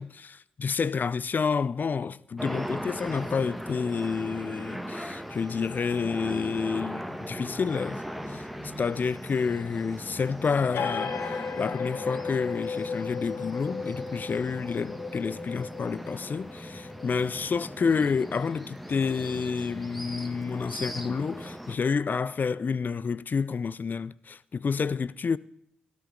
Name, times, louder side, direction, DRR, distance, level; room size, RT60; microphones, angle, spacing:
voice 1, 0.0-8.0 8.3-25.4, left 5 dB, 50° left, 0.4 m, -29 dB
sound 1, 2.4-21.8, equal, ahead, 1.2 m, -39 dB
sound 2, 10.7-18.0, left 5 dB, 70° left, 1.0 m, -36 dB
13.5 x 12.5 x 3.8 m
supercardioid pair, 40°, 4 cm